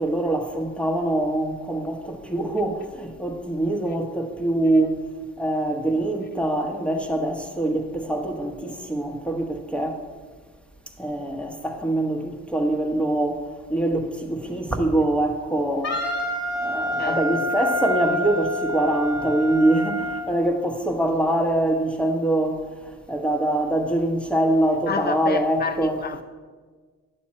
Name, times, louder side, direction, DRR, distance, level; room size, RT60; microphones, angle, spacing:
voice 1, 0.0-5.0 5.4-10.0 11.0-13.4 13.7-16.0 16.6-22.6 23.1-26.0, right 1 dB, 5° left, 1.2 m, -24 dB
Wind instrument woodwind instrument, 15.8-20.3, left 1 dB, 50° left, 2.2 m, -27 dB
voice 2, 17.0-17.5 24.9-26.2, left 5 dB, 35° left, 0.6 m, -30 dB
10.0 x 7.6 x 4.3 m
cardioid pair, 90°, 30 cm